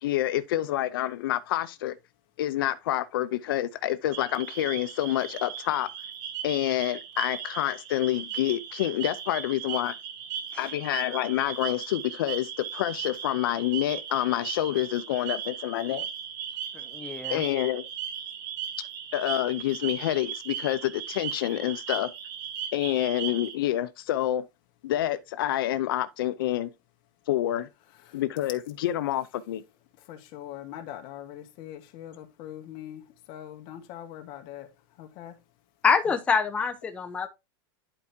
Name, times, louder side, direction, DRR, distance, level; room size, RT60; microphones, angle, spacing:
voice 1, 0.0-2.0 2.4-5.9 6.4-9.9 10.6-16.1 17.3-17.8 19.1-22.1 22.7-24.4 24.8-26.7 27.3-27.7 28.1-29.6, left 13 dB, 80° left, 0.6 m, -28 dB
sound 1, 4.1-23.5, right 8 dB, 60° right, 1.9 m, -37 dB
voice 2, 16.9-17.4 35.8-37.3, left 5 dB, 10° left, 0.6 m, -26 dB
voice 3, 30.1-34.7 35.0-35.3, left 11 dB, 45° left, 1.5 m, -42 dB
11.0 x 4.7 x 2.7 m
supercardioid pair, 155°, 12 cm